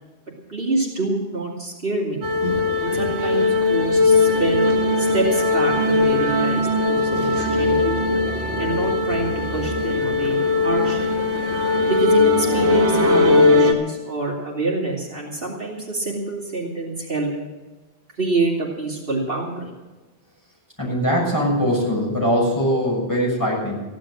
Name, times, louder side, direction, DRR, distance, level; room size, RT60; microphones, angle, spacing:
voice 1, 0.5-2.3 2.8-4.6 5.0-8.0 8.6-11.0 11.9-17.3 18.2-19.7, right 2 dB, 55° right, -3 dB, 2.9 m, -26 dB
sound 1, 2.2-13.7, left 3 dB, 75° right, 2.0 m, -19 dB
voice 2, 20.8-23.8, equal, 15° left, -5 dB, 6.8 m, -21 dB
15.0 x 11.5 x 6.4 m, 1.2 s
omnidirectional pair, 1.1 m